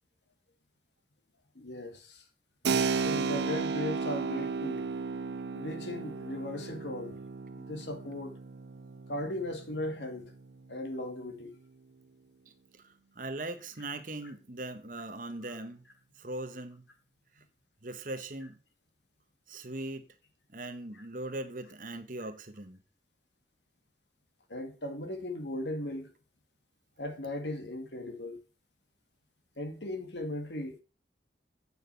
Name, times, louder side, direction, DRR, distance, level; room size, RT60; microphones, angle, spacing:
voice 1, 1.6-2.2 3.0-4.9 5.5-7.2 7.6-8.3 9.1-10.3 10.7-11.5 24.5-26.1 27.0-28.4 29.6-30.8, left 1 dB, 85° left, 2.2 m, -37 dB
Keyboard (musical), 2.6-11.0, right 5 dB, 75° right, 0.6 m, -34 dB
voice 2, 12.7-15.8 16.2-16.8 17.8-18.6 19.5-20.1 20.5-22.8, right 2 dB, 50° right, 1.4 m, -40 dB
9.1 x 6.2 x 6.8 m
head